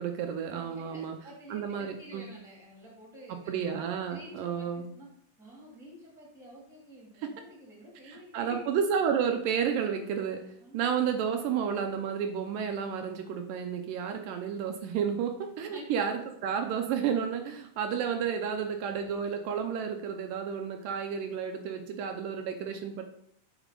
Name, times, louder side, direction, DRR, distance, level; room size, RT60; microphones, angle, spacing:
voice 1, 0.0-1.2 1.5-2.3 3.3-4.9 7.2-7.3 8.1-10.4 10.7-23.0, right 7 dB, 80° right, 5 dB, 2.2 m, -31 dB
voice 2, 0.5-5.1 5.4-8.6 10.6-10.9 15.6-16.0, equal, ahead, -4 dB, 2.0 m, -49 dB
8.1 x 4.4 x 3.8 m, 0.69 s
omnidirectional pair, 3.9 m